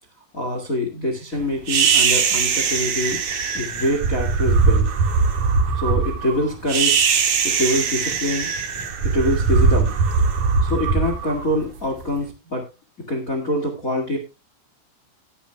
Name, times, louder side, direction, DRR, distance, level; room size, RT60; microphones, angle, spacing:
voice 1, 0.3-3.2 3.5-4.9 5.7-7.0 7.4-8.5 9.0-10.0 10.6-12.7 13.1-14.2, left 1 dB, 50° left, 3 dB, 1.0 m, -25 dB
sound 1, 1.7-12.0, right 5 dB, 50° right, 2.7 m, -20 dB
17.5 x 10.0 x 2.3 m, 0.27 s
omnidirectional pair, 5.3 m